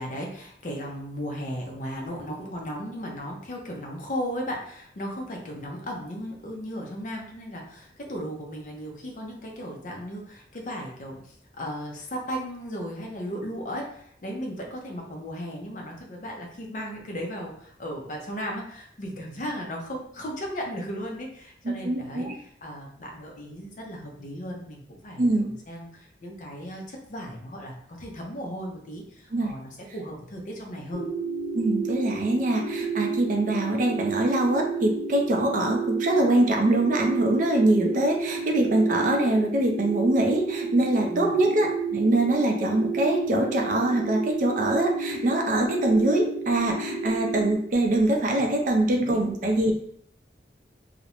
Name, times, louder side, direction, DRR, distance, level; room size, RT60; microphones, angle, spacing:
voice 1, 0.0-31.1 41.1-41.4 49.0-49.2, equal, 45° left, 0 dB, 0.5 m, -36 dB
voice 2, 21.6-22.4 25.2-25.5 29.3-29.5 31.5-49.7, right 1 dB, 45° right, 1 dB, 0.4 m, -23 dB
sound 1, 30.9-47.5, right 4 dB, 80° right, 0.8 m, -31 dB
2.4 x 2.0 x 2.8 m, 0.66 s
head